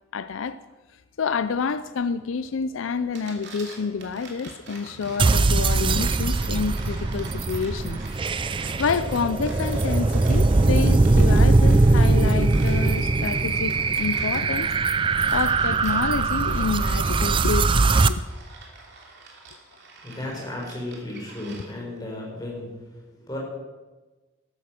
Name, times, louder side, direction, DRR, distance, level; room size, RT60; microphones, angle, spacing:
voice 1, 0.1-0.6 1.2-8.0 8.5-14.7 15.3-18.2, left 5 dB, 75° left, 0.5 m, -28 dB
sound 1, 3.0-22.0, right 3 dB, 55° right, 2.9 m, -45 dB
sound 2, 5.2-18.1, right 3 dB, 25° right, 0.4 m, -21 dB
voice 2, 20.0-23.4, left 1 dB, 20° left, 4.7 m, -34 dB
13.5 x 12.5 x 5.8 m
head